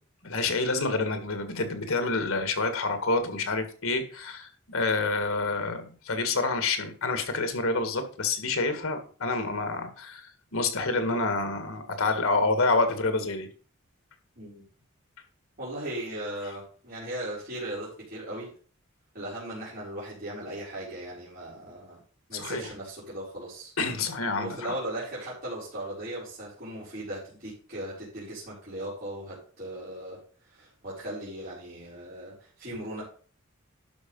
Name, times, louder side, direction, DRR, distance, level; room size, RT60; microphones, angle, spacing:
voice 1, 0.2-13.5 22.3-22.6 23.8-24.7, left 3 dB, 80° left, 8 dB, 1.7 m, -28 dB
voice 2, 15.6-18.5 19.1-22.0 22.3-23.7 24.3-33.0, right 1 dB, 45° right, -8 dB, 4.1 m, -38 dB
11.5 x 4.7 x 5.3 m, 0.41 s
head